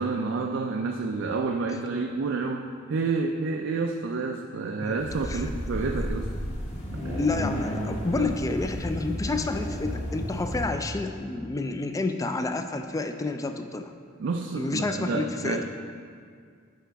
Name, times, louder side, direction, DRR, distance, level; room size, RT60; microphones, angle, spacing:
voice 1, 0.0-6.3 6.9-7.2 8.2-8.3 14.2-15.6, right 4 dB, 65° right, 3 dB, 0.4 m, -29 dB
sound 1, 5.0-10.7, equal, 35° left, 1.1 m, -32 dB
voice 2, 7.2-13.9 14.5-15.6, left 3 dB, 15° left, 7 dB, 0.3 m, -29 dB
9.2 x 4.9 x 3.5 m, 2.1 s
head